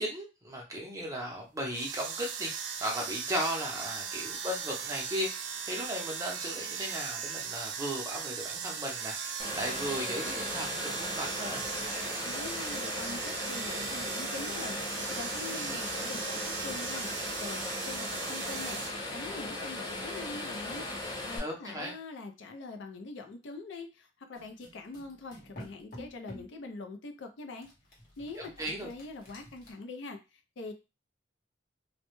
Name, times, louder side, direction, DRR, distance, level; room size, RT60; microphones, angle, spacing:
voice 1, 0.0-5.3 5.6-11.6 15.5-15.8 21.4-21.9 28.3-28.9, equal, 15° right, -1 dB, 0.6 m, -36 dB
sound 1, 1.7-18.9, right 7 dB, 70° right, 0.4 m, -38 dB
sound 2, 9.4-21.4, left 2 dB, 25° left, 0.5 m, -38 dB
voice 2, 12.1-17.1 17.4-18.8 19.1-20.8 21.2-27.7 28.2-30.7, left 3 dB, 75° left, 5 dB, 0.4 m, -43 dB
sound 3, 24.3-26.6 27.6-29.7, equal, 45° left, 0.8 m, -50 dB
2.1 x 2.0 x 2.9 m, 0.29 s
head